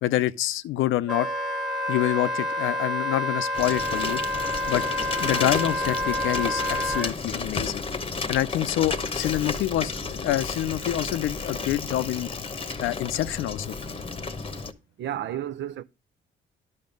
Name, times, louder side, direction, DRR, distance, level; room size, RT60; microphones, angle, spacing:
voice 1, 0.0-1.3 1.9-4.2 4.7-4.8 5.2-7.8 8.3-12.4 12.8-13.8, left 14 dB, 85° left, 0.6 m, -27 dB
Wind instrument woodwind instrument, 1.1-7.1, left 1 dB, ahead, 1.4 m, -28 dB
Bicycle, 3.5-14.7, left 4 dB, 25° left, 0.9 m, -32 dB
voice 2, 15.0-15.8, right 11 dB, 65° right, 0.6 m, -31 dB
10.5 x 5.9 x 5.2 m
cardioid pair, 90°, 20 cm